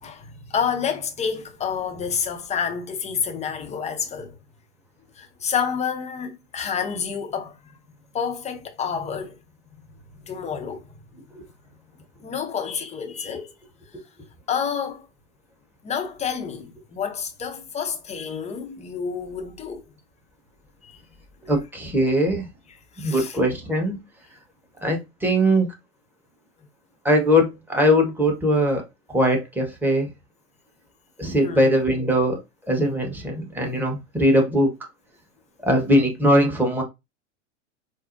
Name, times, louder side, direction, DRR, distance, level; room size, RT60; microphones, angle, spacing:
voice 1, 0.0-4.4 5.2-7.7 8.1-9.4 10.3-10.8 12.2-13.5 14.5-15.1 15.8-19.8 20.8-21.0 22.9-23.4 31.4-31.7, left 7 dB, 20° left, 0.6 m, -29 dB
voice 2, 21.4-22.5 23.0-24.0 24.8-25.7 27.0-28.8 29.1-30.1 31.2-32.4 32.7-34.7 35.6-36.8, equal, 5° right, 1.1 m, -20 dB
4.6 x 2.1 x 2.6 m
hypercardioid pair, 105°, 37 cm